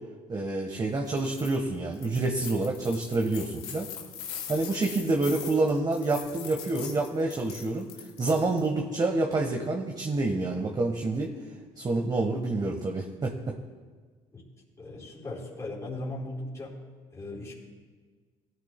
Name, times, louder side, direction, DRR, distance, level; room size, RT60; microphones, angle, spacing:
voice 1, 0.3-3.9 4.5-7.9 8.2-11.3 11.8-13.6, right 2 dB, 30° right, 2 dB, 1.4 m, -28 dB
sound 1, 1.0-1.6 1.9-8.7, left 8 dB, 90° left, 1.6 m, -42 dB
voice 2, 14.8-16.8 17.1-17.5, left 2 dB, 25° left, -6 dB, 3.8 m, -37 dB
18.0 x 12.5 x 2.3 m, 1.5 s
supercardioid pair, 75°, 13 cm